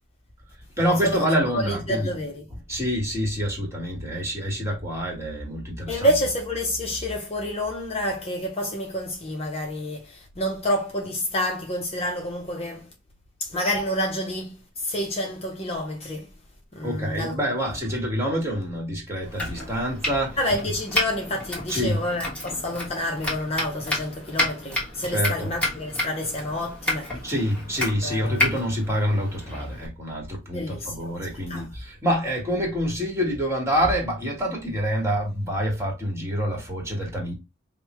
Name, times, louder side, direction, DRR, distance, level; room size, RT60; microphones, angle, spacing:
voice 1, 0.8-2.1 2.7-6.1 16.8-20.4 21.7-22.0 25.1-25.5 27.2-37.3, equal, 15° right, 1.6 m, -26 dB
voice 2, 1.5-2.4 5.9-12.9 13.4-16.3 16.7-17.4 20.4-27.3 28.0-28.5 30.5-31.7, left 1 dB, 30° left, 0.7 m, -28 dB
Domestic sounds home sounds, 19.2-29.9, left 1 dB, 5° left, 1.4 m, -31 dB
5.2 x 2.2 x 3.0 m
head